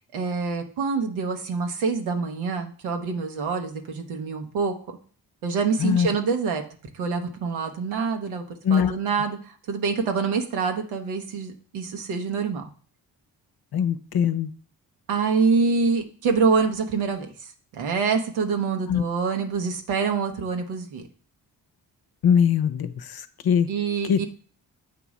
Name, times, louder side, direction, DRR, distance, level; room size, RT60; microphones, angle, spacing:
voice 1, 0.1-4.7 5.4-6.6 6.9-12.7 15.1-21.1 23.7-24.1, right 5 dB, 80° right, 4 dB, 1.0 m, -26 dB
voice 2, 13.7-14.5 18.9-19.0 22.2-23.7 24.0-24.2, left 7 dB, 50° left, 11 dB, 0.7 m, -21 dB
7.8 x 3.0 x 4.9 m, 0.44 s
supercardioid pair, 40°, 47 cm